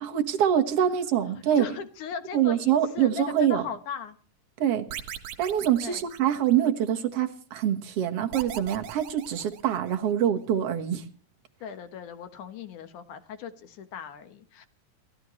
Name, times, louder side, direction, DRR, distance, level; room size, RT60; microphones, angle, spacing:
voice 1, 0.0-1.7 2.3-3.6 4.6-4.9 5.4-11.0, right 10 dB, 55° right, 6 dB, 2.1 m, -25 dB
voice 2, 1.6-4.2 5.8-6.0 11.6-14.7, left 6 dB, 70° left, 9 dB, 2.6 m, -38 dB
sound 1, 4.9-6.9 8.3-10.1, right 10 dB, 80° right, 2.9 m, -40 dB
29.0 x 13.0 x 3.2 m, 0.38 s
omnidirectional pair, 3.9 m